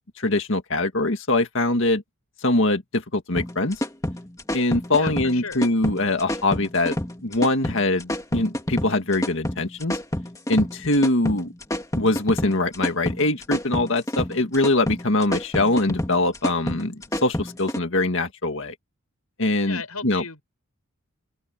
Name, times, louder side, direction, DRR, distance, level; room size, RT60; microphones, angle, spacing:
voice 1, 0.2-2.0 2.4-3.8 4.5-10.0 10.5-11.5 12.0-18.7 19.4-20.2, left 2 dB, 55° left, 2.0 m, -23 dB
sound 1, 3.4-17.8, left 1 dB, 15° left, 2.2 m, -28 dB
voice 2, 5.0-5.6 19.7-20.4, left 5 dB, 80° left, 7.4 m, -35 dB
open air
head